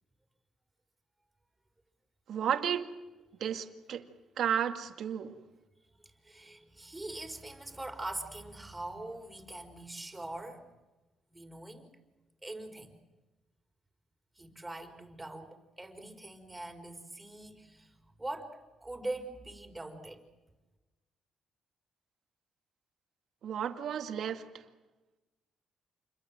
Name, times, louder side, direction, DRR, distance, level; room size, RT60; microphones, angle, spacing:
voice 1, 2.3-2.9 3.4-4.1 4.4-5.4 23.4-24.4, right 9 dB, 70° right, 2.1 m, -32 dB
voice 2, 6.2-10.7 11.3-11.9 12.4-12.9 14.4-20.2, right 2 dB, 15° right, 5.0 m, -43 dB
29.0 x 22.5 x 7.7 m
cardioid pair, 90°, 0 cm